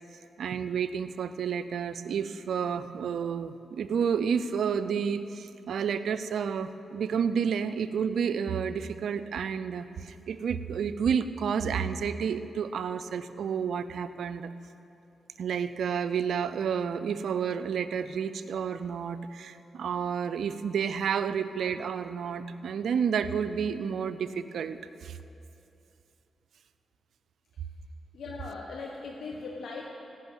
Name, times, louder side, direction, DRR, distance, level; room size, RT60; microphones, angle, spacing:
voice 1, 0.4-14.5 15.4-25.2, right 7 dB, 75° right, 12 dB, 0.5 m, -30 dB
voice 2, 28.1-29.8, left 4 dB, 75° left, -1 dB, 1.2 m, -39 dB
16.0 x 6.3 x 9.0 m, 2.8 s
supercardioid pair, 50°, 0 cm